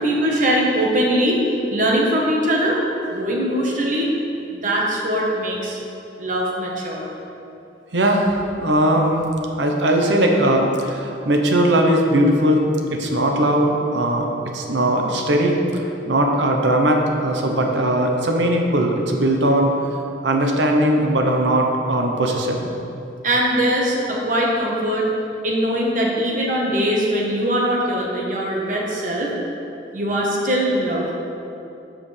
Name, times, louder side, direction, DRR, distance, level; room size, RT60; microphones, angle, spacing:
voice 1, 0.0-1.4 1.7-2.8 3.1-4.1 4.5-5.8 6.2-7.1 23.2-25.1 25.4-29.3 29.9-31.1, equal, 45° right, -3 dB, 1.2 m, -21 dB
voice 2, 7.9-9.2 9.6-12.6 12.9-14.3 14.5-19.7 20.2-22.7 27.7-27.8, right 1 dB, 80° right, 2 dB, 1.0 m, -19 dB
13.0 x 5.0 x 3.4 m, 2.8 s
head